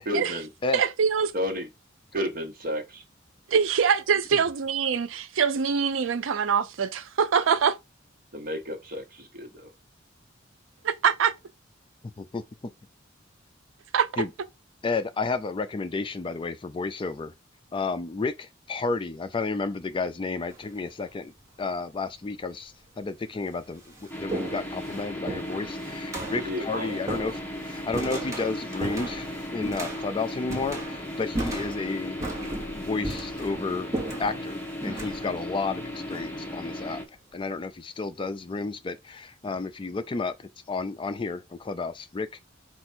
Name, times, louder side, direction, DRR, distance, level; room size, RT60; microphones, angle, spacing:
voice 1, 0.1-0.5 1.3-1.7 2.1-3.0 8.3-9.7 26.3-27.0, equal, 45° right, 1.0 m, -32 dB
voice 2, 0.7-1.3 3.5-7.8 10.8-11.3 13.9-14.2, right 6 dB, 90° right, 0.5 m, -24 dB
voice 3, 14.8-17.3 17.7-21.3 21.6-33.9 34.2-37.0 37.3-40.3 40.7-42.4, left 4 dB, 25° left, 0.4 m, -31 dB
sound 1, 20.5-20.9 21.9-22.0 22.8-22.9 23.3-36.8, right 2 dB, 15° right, 1.2 m, -37 dB
sound 2, 24.1-37.0, left 1 dB, 10° left, 0.9 m, -36 dB
4.4 x 2.4 x 4.4 m
head